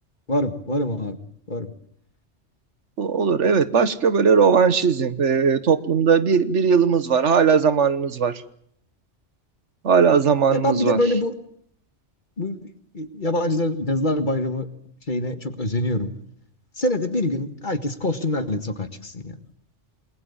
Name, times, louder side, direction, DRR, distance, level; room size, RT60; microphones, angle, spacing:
voice 1, 0.3-1.2 1.5-1.7 10.5-11.3 12.4-14.7 15.1-16.1 16.8-19.3, left 1 dB, 40° left, 10 dB, 1.9 m, -25 dB
voice 2, 3.0-8.4 9.8-11.0, right 6 dB, 75° right, 14 dB, 1.5 m, -18 dB
28.5 x 21.0 x 7.2 m, 0.66 s
omnidirectional pair, 1.2 m